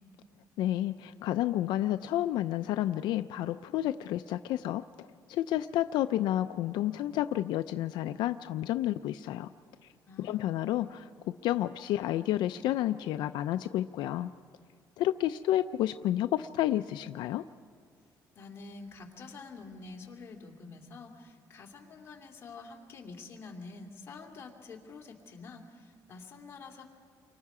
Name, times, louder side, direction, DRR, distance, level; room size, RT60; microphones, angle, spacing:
voice 1, 0.6-9.5 10.2-14.3 15.0-17.4, left 13 dB, 85° left, 10 dB, 0.5 m, -30 dB
voice 2, 10.0-10.6 18.3-26.8, left 4 dB, 35° left, 1 dB, 2.5 m, -47 dB
29.5 x 24.0 x 4.9 m, 2.1 s
cardioid pair, 170°, 7 cm